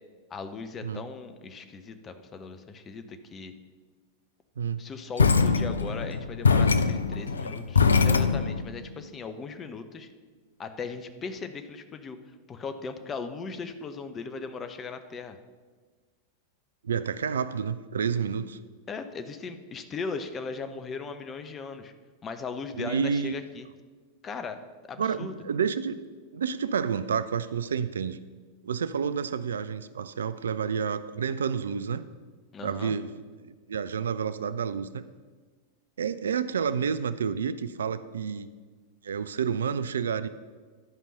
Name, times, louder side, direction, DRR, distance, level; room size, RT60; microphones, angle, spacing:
voice 1, 0.3-3.5 4.8-10.1 10.6-12.2 12.5-15.4 18.9-21.9 22.2-23.7 24.2-25.4 32.5-33.0, left 4 dB, 25° left, 9 dB, 0.8 m, -38 dB
sound 1, 5.2-8.7, left 5 dB, 75° left, 0.5 m, -23 dB
voice 2, 16.8-18.6 22.8-23.4 25.0-26.0 26.3-28.2 28.6-32.0 32.6-33.2 33.4-35.1 36.0-38.5 39.0-40.3, right 7 dB, 65° right, 14 dB, 0.3 m, -29 dB
11.0 x 5.4 x 5.8 m, 1.4 s
figure-of-eight pair, 90°, 0 cm